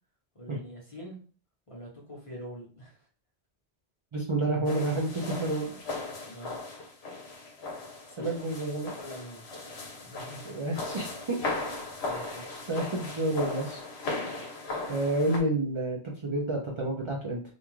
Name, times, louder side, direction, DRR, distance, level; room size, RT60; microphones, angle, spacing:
voice 1, 0.3-1.2 1.7-3.1 6.2-6.6 8.0-8.4 8.9-9.5 10.0-10.5 12.0-12.7, equal, 30° left, -3 dB, 0.8 m, -44 dB
voice 2, 4.1-5.8 8.2-8.9 10.5-11.4 12.1-13.8 14.3-14.5 14.9-17.4, right 2 dB, 40° right, -3 dB, 0.4 m, -30 dB
sound 1, 4.7-15.4, left 3 dB, 70° left, 0.9 m, -37 dB
2.5 x 2.3 x 3.0 m, 0.41 s
omnidirectional pair, 1.1 m